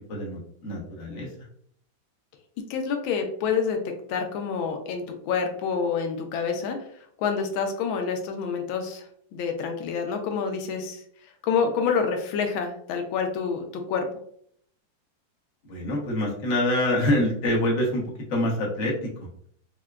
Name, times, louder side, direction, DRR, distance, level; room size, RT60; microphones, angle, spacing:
voice 1, 0.1-1.3 15.6-18.0 18.3-19.3, left 1 dB, 50° left, -3 dB, 1.0 m, -26 dB
voice 2, 2.7-6.8 7.2-11.0 11.4-14.1, left 6 dB, 85° left, 5 dB, 1.4 m, -27 dB
4.6 x 2.1 x 2.3 m, 0.63 s
omnidirectional pair, 2.2 m